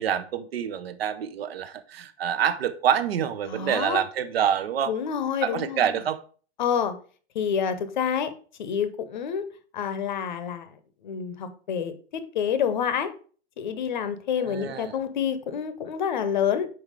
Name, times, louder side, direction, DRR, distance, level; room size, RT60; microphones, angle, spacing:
voice 1, 0.0-4.9 5.4-6.2 14.4-14.9, right 8 dB, 65° right, 12 dB, 0.8 m, -26 dB
voice 2, 3.4-4.0 4.9-6.0 6.6-6.9 7.3-8.3 8.6-9.4 9.7-13.1 13.6-16.7, left 7 dB, 45° left, 11 dB, 0.8 m, -28 dB
5.5 x 4.6 x 4.9 m, 0.41 s
hypercardioid pair, 175°, 32 cm